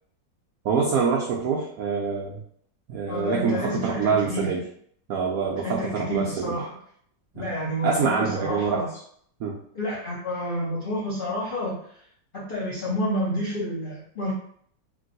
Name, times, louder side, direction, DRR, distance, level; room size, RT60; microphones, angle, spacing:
voice 1, 0.6-2.4 2.9-4.6 5.1-6.5 7.4-7.5 7.8-8.8 9.4-9.6, right 5 dB, 85° right, -2 dB, 0.7 m, -25 dB
voice 2, 3.1-4.6 5.6-6.8 7.3-8.9 9.7-11.8 12.3-14.3, equal, 75° left, -7 dB, 0.5 m, -29 dB
3.0 x 2.9 x 2.6 m, 0.63 s
omnidirectional pair, 2.1 m